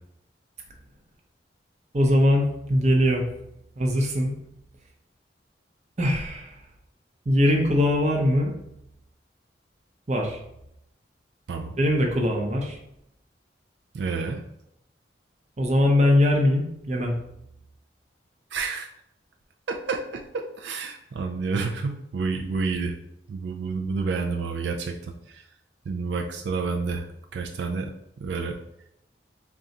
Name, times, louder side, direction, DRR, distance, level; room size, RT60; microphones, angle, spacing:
voice 1, 1.9-3.2 3.8-4.3 6.0-6.6 7.3-8.5 10.1-10.4 11.8-12.8 15.6-17.2, left 1 dB, 40° right, 1 dB, 0.7 m, -21 dB
voice 2, 13.9-14.4 18.5-18.9 19.7-22.9 23.3-25.0 25.3-25.4 25.9-27.1 27.3-27.9 28.2-28.6, right 4 dB, 80° right, 2 dB, 0.4 m, -29 dB
3.7 x 2.3 x 4.0 m, 0.79 s
head